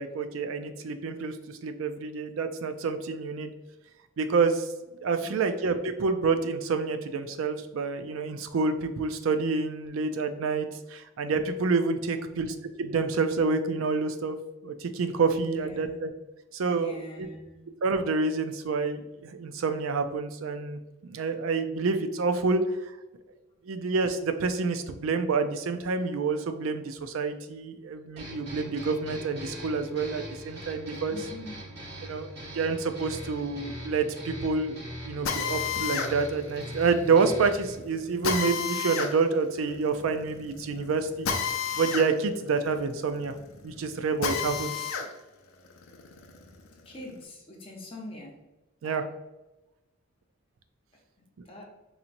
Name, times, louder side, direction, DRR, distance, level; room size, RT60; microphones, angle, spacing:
voice 1, 0.0-3.5 4.2-4.7 5.0-14.4 14.6-16.1 16.5-16.9 17.8-22.9 23.6-31.2 32.0-34.8 35.0-41.3 41.8-43.3 43.6-44.7 48.8-49.0 51.4-51.5, right 4 dB, 75° right, 8 dB, 0.4 m, -28 dB
voice 2, 5.1-5.4 12.0-12.5 15.5-16.0 16.7-17.6 31.1-31.7 46.8-48.3 48.8-49.1 51.4-51.6, left 1 dB, 25° left, -1 dB, 0.7 m, -44 dB
sound 1, 28.2-37.8, equal, 50° right, 1.3 m, -41 dB
Drill, 35.2-45.1 45.5-47.1, left 6 dB, 85° left, 0.5 m, -33 dB
4.1 x 2.9 x 2.5 m, 1.0 s
head